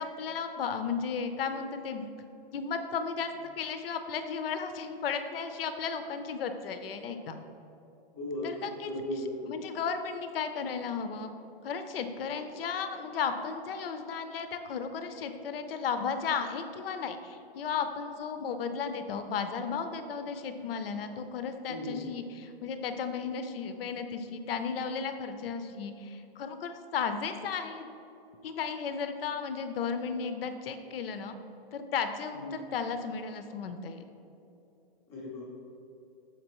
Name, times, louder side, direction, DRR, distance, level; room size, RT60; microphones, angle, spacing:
voice 1, 0.0-2.0 2.5-7.4 8.4-8.9 9.5-11.3 11.6-22.2 22.6-27.9 28.4-31.4 31.7-34.0, left 6 dB, 75° left, 8 dB, 0.6 m, -34 dB
voice 2, 8.1-9.6 21.7-22.0 32.3-32.6 35.1-35.4, left 1 dB, 10° left, -4 dB, 0.4 m, -37 dB
6.5 x 4.9 x 3.0 m, 2.9 s
hypercardioid pair, 170°, 29 cm